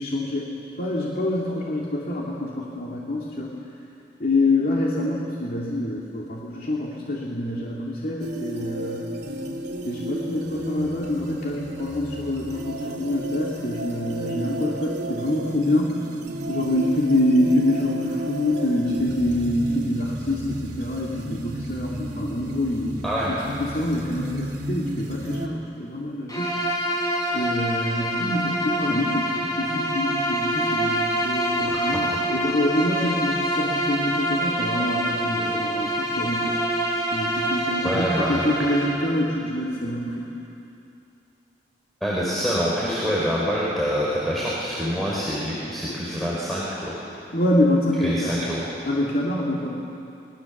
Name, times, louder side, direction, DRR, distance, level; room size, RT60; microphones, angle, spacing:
voice 1, 0.0-3.5 4.2-9.0 9.8-16.0 16.5-26.6 27.3-36.6 37.1-40.3 47.3-48.3 48.8-49.8, left 1 dB, 55° left, -4 dB, 2.4 m, -26 dB
sound 1, 8.2-25.5, right 1 dB, 75° right, 2.4 m, -33 dB
voice 2, 23.0-23.3 31.7-32.1 37.8-38.5 42.0-46.9 48.0-48.7, equal, ahead, -7 dB, 4.0 m, -26 dB
Bowed string instrument, 26.3-39.1, right 1 dB, 20° left, 4.5 m, -26 dB
27.0 x 21.0 x 7.2 m, 2.7 s
head